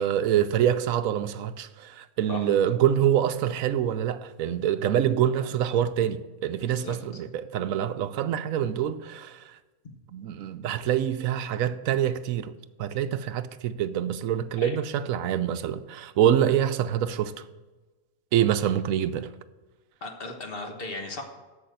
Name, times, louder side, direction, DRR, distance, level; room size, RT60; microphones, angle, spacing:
voice 1, 0.0-9.4 10.1-12.5 12.8-17.4 18.3-19.3, right 10 dB, 75° right, 1.0 m, -25 dB
voice 2, 6.6-7.0 14.6-14.8 20.0-21.2, left 2 dB, 45° left, 1.5 m, -36 dB
8.6 x 6.8 x 8.1 m
omnidirectional pair, 1.4 m